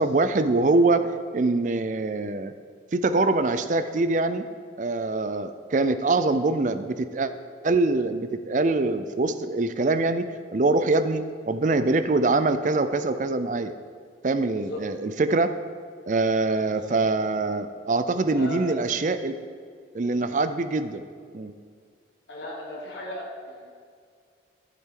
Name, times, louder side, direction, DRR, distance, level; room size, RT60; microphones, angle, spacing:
voice 1, 0.0-2.5 2.9-4.5 4.8-7.3 7.6-13.7 14.2-15.5 16.1-19.4 19.9-21.0 21.3-21.5, right 3 dB, 45° right, 11 dB, 0.5 m, -24 dB
voice 2, 18.3-18.8 22.3-23.7, left 1 dB, 80° left, -3 dB, 1.4 m, -37 dB
12.5 x 7.6 x 3.8 m, 2.1 s
head